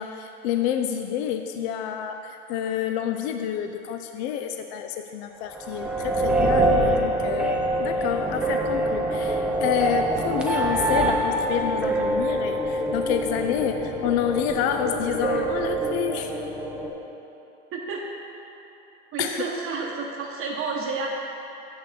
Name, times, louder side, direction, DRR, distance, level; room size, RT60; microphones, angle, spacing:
voice 1, 0.0-16.3 19.2-19.4, left 9 dB, 60° left, 6 dB, 0.5 m, -28 dB
sound 1, 5.6-16.9, right 1 dB, 5° right, 0.6 m, -25 dB
voice 2, 17.7-18.1 19.1-21.1, right 4 dB, 35° right, -2 dB, 0.9 m, -30 dB
6.6 x 6.2 x 6.6 m, 3.0 s
supercardioid pair, 125°, 38 cm